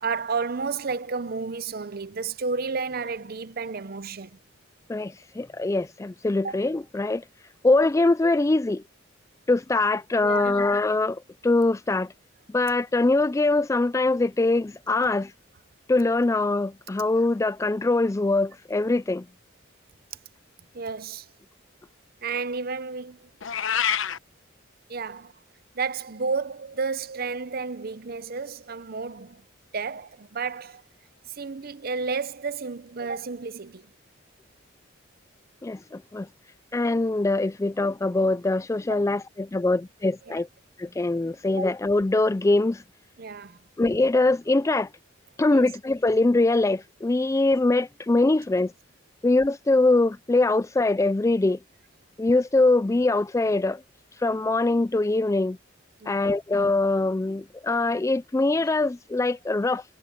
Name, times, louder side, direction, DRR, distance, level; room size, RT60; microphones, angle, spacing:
voice 1, 0.0-4.4 6.4-6.6 10.2-10.5 20.7-21.3 22.2-23.3 24.9-25.3 25.7-29.4 29.7-30.8 31.3-33.8 38.9-39.0 40.3-40.4 41.6-41.7 43.2-43.6 45.5-45.7 56.0-56.2, right 4 dB, 50° right, 0.7 m, -31 dB
voice 2, 4.9-7.2 7.6-8.8 9.5-12.1 12.5-15.3 15.9-19.3 35.6-36.3 36.7-40.5 40.8-42.8 43.8-44.9 45.4-48.7 49.2-51.6 52.2-53.8 54.2-55.6 56.1-59.8, left 2 dB, 15° left, 0.3 m, -23 dB
Meow, 23.4-24.2, left 8 dB, 75° left, 0.9 m, -25 dB
head